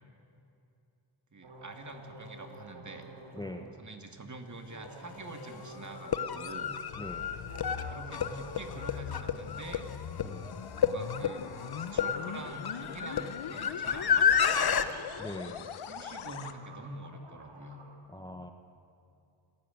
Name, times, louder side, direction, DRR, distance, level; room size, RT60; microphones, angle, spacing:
voice 1, 1.3-3.0 3.8-6.8 7.8-9.9 10.7-11.5 11.8-15.0 15.7-17.8, right 2 dB, 35° right, 5 dB, 2.4 m, -45 dB
sound 1, 1.4-3.6 4.7-6.5 7.3-9.0 9.2-9.3 10.8-13.4 14.4-14.5 14.6-18.0, right 2 dB, 70° right, 4.7 m, -51 dB
sound 2, 4.8-4.9 5.9-14.9, left 7 dB, 50° left, 1.1 m, -30 dB
sound 3, 6.5-16.5, left 8 dB, 85° left, 1.2 m, -42 dB
voice 2, 15.2-15.6 18.1-18.5, left 1 dB, 10° left, 5 dB, 1.2 m, -41 dB
27.0 x 13.5 x 9.4 m, 2.7 s
cardioid pair, 85°, 47 cm